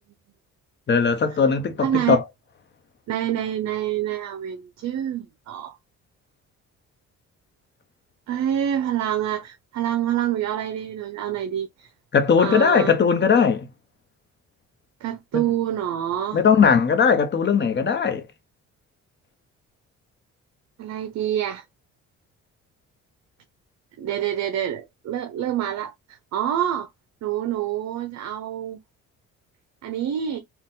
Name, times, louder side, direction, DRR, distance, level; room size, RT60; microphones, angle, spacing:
voice 1, 0.9-2.2 12.1-13.7 15.3-15.4 16.3-18.3, left 6 dB, 35° left, 1.0 m, -19 dB
voice 2, 1.8-2.2 3.1-5.7 8.3-11.9 12.4-12.9 15.0-16.4 20.8-21.6 24.0-26.9 27.2-28.8 29.8-30.4, right 10 dB, 65° right, 0.7 m, -27 dB
4.3 x 2.4 x 3.6 m
cardioid pair, 120°, 30 cm